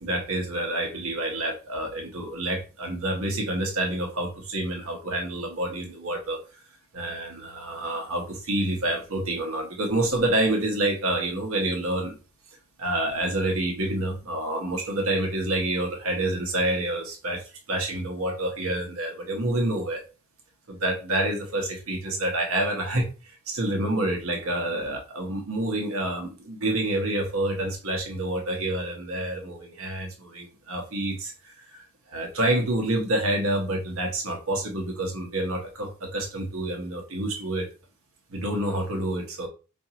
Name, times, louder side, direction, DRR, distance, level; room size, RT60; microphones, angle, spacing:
voice 1, 0.0-6.4 6.9-12.2 12.8-20.0 20.7-37.7 38.3-39.5, right 1 dB, 70° right, 1.0 m, -28 dB
4.8 x 2.6 x 2.8 m
head